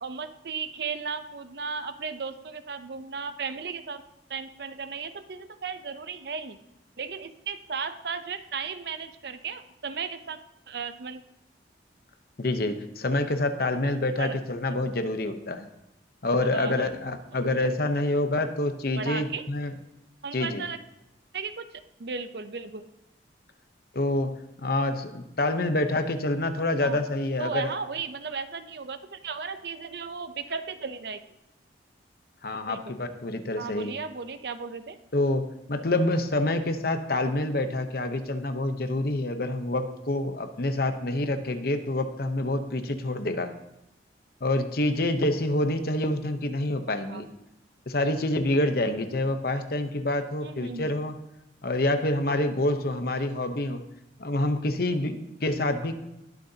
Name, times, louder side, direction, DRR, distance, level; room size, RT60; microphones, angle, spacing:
voice 1, 0.0-4.0 4.3-6.6 7.0-10.4 10.7-11.2 13.7-13.8 14.1-14.4 14.7-14.9 16.4-16.9 19.0-19.4 20.2-20.8 21.3-22.8 26.8-27.0 27.4-31.2 32.7-32.9 33.6-35.0 47.1-47.2 50.4-51.0, right 5 dB, 60° right, 10 dB, 0.6 m, -35 dB
voice 2, 12.4-15.7 16.2-19.7 20.3-20.6 23.9-27.7 32.4-33.9 35.1-43.5 44.4-47.2 47.9-51.1 51.6-53.8 54.2-55.9, left 2 dB, 55° left, 8 dB, 0.8 m, -27 dB
20.0 x 6.6 x 2.8 m, 0.88 s
head